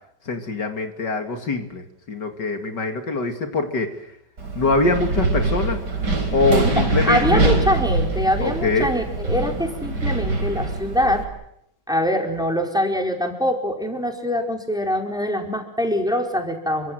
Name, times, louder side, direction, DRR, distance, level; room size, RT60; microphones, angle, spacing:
voice 1, 0.3-4.0 4.5-5.8 6.3-7.5 8.4-8.9, left 3 dB, 65° left, 6 dB, 2.9 m, -23 dB
Wind, 4.4-11.2, right 2 dB, 60° right, 5.5 m, -23 dB
voice 2, 6.8-11.3 11.9-16.9, equal, ahead, 3 dB, 4.7 m, -23 dB
30.0 x 25.0 x 7.7 m, 0.75 s
omnidirectional pair, 2.0 m